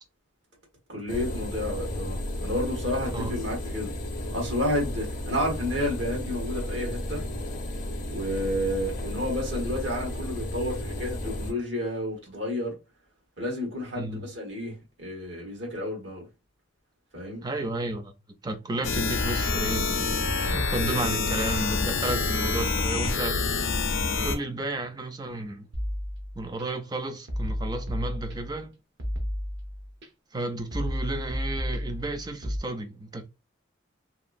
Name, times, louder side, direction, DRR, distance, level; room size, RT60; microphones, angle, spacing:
voice 1, 0.9-3.9 4.3-7.2 8.1-12.8 13.4-16.2 17.1-17.5 20.4-20.6, left 1 dB, 85° right, 1.4 m, -31 dB
sound 1, 1.1-11.5, left 1 dB, 45° left, 0.6 m, -33 dB
voice 2, 17.4-18.1 18.4-19.9 20.4-23.4 24.2-25.7 26.4-28.7 30.3-33.3, right 2 dB, 20° right, 0.4 m, -32 dB
sound 2, 18.8-24.4, left 4 dB, 80° left, 0.5 m, -27 dB
sound 3, 25.7-26.6 27.3-28.6 29.0-30.1 30.7-32.6, equal, 65° right, 0.8 m, -32 dB
2.8 x 2.3 x 2.5 m
head